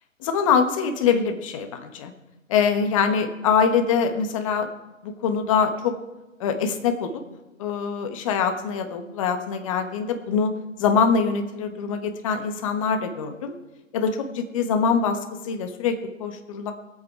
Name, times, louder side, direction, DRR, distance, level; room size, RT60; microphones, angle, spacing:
voice 1, 0.2-2.1 2.5-4.7 5.0-5.9 6.4-7.2 7.6-10.5 10.8-13.6 13.9-16.7, left 6 dB, 25° left, 6 dB, 1.2 m, -24 dB
21.5 x 8.3 x 4.7 m, 1.1 s
figure-of-eight pair, 145°, 40 cm